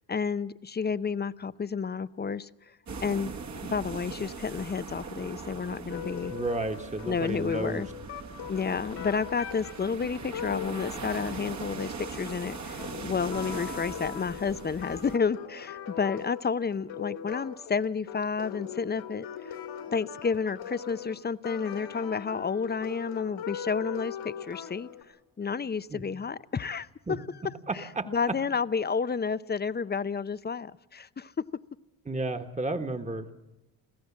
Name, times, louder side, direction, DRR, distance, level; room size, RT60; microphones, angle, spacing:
voice 1, 0.0-2.5 3.0-3.3 3.6-6.3 7.1-7.9 8.5-19.6 19.9-24.9 25.4-27.2 27.7-31.4, left 5 dB, 20° left, 16 dB, 0.6 m, -31 dB
sound 1, 2.9-15.2, right 5 dB, 35° right, 1.4 m, -41 dB
sound 2, 5.9-25.0, left 8 dB, 85° left, 3.2 m, -41 dB
voice 2, 6.3-7.8 25.9-26.0 27.1-27.2 27.7-28.4 32.1-33.3, right 2 dB, 15° right, 7 dB, 1.4 m, -32 dB
24.0 x 15.5 x 7.4 m, 1.0 s
supercardioid pair, 60°, 45 cm